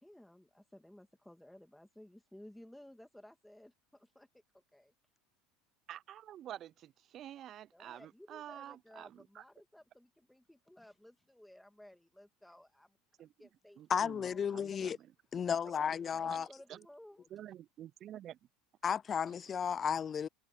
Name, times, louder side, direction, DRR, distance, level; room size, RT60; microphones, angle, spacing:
voice 1, 0.0-4.3 4.5-4.9 7.7-14.4 15.4-15.5 15.9-17.3, left 1 dB, 5° left, 2.4 m, -57 dB
voice 2, 5.9-9.4 13.2-13.3 13.8-15.1 16.3-16.4 16.7-16.9 17.3-18.4, right 11 dB, 45° right, 0.6 m, -49 dB
voice 3, 13.9-15.0 15.3-16.5 18.8-20.3, left 7 dB, 35° left, 0.4 m, -33 dB
hypercardioid pair, 80°, 0 cm